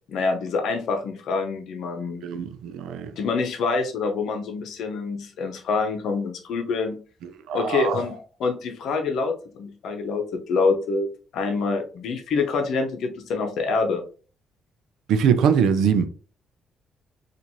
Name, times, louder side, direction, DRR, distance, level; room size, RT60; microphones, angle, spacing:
voice 1, 0.1-2.2 3.2-7.0 7.5-11.1 11.3-14.0, left 4 dB, 75° left, 0.7 m, -26 dB
voice 2, 2.2-3.1 7.5-8.0 15.1-16.1, right 7 dB, 85° right, 0.5 m, -22 dB
4.4 x 2.5 x 2.7 m
cardioid pair, 90°, 0 cm